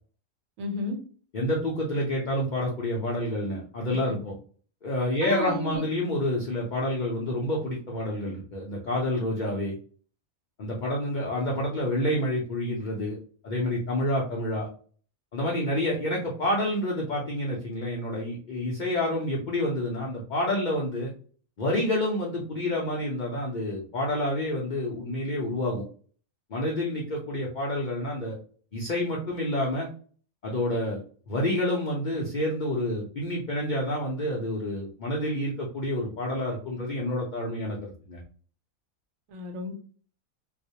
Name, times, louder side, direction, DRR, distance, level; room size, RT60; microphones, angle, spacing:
voice 1, 0.6-1.0 3.9-4.2 5.2-5.8 39.3-39.7, left 1 dB, 70° right, 4 dB, 1.0 m, -33 dB
voice 2, 1.3-4.3 4.8-9.7 10.6-13.2 13.4-14.7 15.3-21.1 21.6-25.8 26.5-28.4 28.7-29.9 30.4-31.0 31.3-38.2, left 1 dB, 90° left, -2 dB, 0.4 m, -28 dB
2.3 x 2.1 x 2.7 m, 0.43 s
omnidirectional pair, 1.5 m